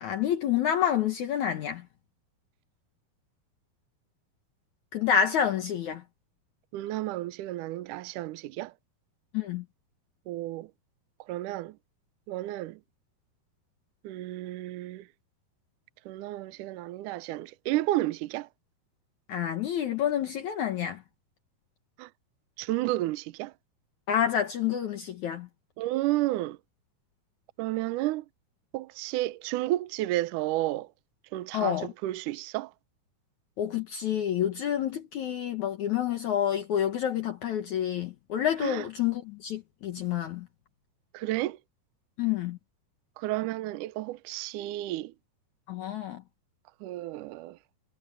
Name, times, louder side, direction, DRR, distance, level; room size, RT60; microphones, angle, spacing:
voice 1, 0.0-1.8 4.9-6.0 9.3-9.6 19.3-21.0 24.1-25.5 31.5-31.9 33.6-40.5 42.2-42.6 45.7-46.2, left 9 dB, 60° left, 2.3 m, -28 dB
voice 2, 6.7-8.7 10.3-10.7 11.3-11.7 12.3-12.8 14.0-15.0 16.1-18.5 22.0-22.1 22.6-23.5 25.8-26.6 27.6-28.2 28.7-30.9 31.3-32.7 38.6-38.8 41.1-41.6 43.2-45.1 46.8-47.6, right 16 dB, 75° right, 1.9 m, -31 dB
omnidirectional pair, 4.4 m